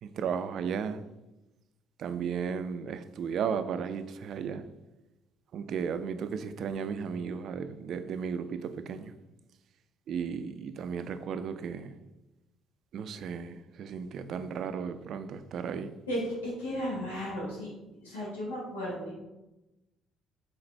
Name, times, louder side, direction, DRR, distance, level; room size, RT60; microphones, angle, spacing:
voice 1, 0.0-1.0 2.0-4.6 5.5-9.1 10.1-12.0 12.9-15.9, right 6 dB, 55° right, 0.3 m, -34 dB
voice 2, 16.1-17.7 18.0-19.1, equal, 85° left, 1.3 m, -35 dB
4.0 x 3.8 x 3.3 m
hypercardioid pair, 50°, 0 cm